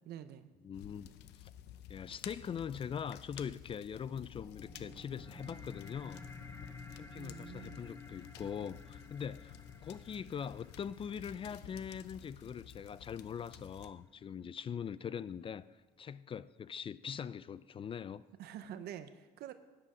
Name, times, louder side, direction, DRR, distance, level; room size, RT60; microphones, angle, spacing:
voice 1, 0.0-0.5 7.1-7.9 18.4-19.5, right 10 dB, 70° right, 0.7 m, -47 dB
voice 2, 0.6-1.1 1.4-1.5 1.9-6.2 6.9-15.7 16.0-18.3, left 7 dB, 30° left, 0.3 m, -42 dB
sound 1, 0.7-13.9, left 11 dB, 85° left, 0.6 m, -53 dB
sound 2, 4.3-15.1, left 3 dB, 15° left, 0.9 m, -54 dB
13.0 x 9.9 x 5.0 m
cardioid pair, 110°, 17 cm